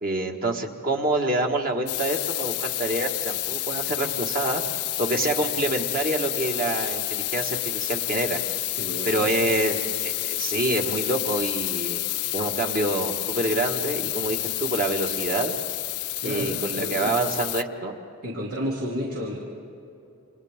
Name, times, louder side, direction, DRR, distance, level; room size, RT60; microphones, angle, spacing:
voice 1, 0.0-4.6 5.0-8.4 9.0-12.0 12.3-15.6 16.2-17.9, right 2 dB, 40° right, 2 dB, 1.8 m, -27 dB
sound 1, 1.9-17.6, left 18 dB, 85° left, 0.5 m, -29 dB
voice 2, 8.8-9.4 16.2-17.2 18.2-19.4, equal, 85° right, -4 dB, 2.9 m, -31 dB
29.0 x 27.0 x 3.7 m, 2.8 s
head